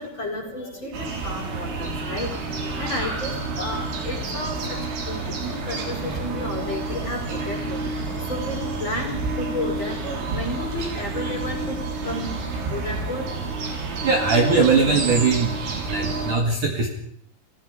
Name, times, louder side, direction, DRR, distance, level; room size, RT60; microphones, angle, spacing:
voice 1, 0.0-14.1, left 2 dB, 25° left, 1 dB, 5.4 m, -33 dB
sound 1, 0.9-16.3, right 3 dB, 80° right, 6.4 m, -29 dB
voice 2, 14.0-15.6 15.9-16.9, right 4 dB, 50° right, 2 dB, 3.1 m, -20 dB
29.5 x 19.0 x 5.0 m, 0.68 s
omnidirectional pair, 5.4 m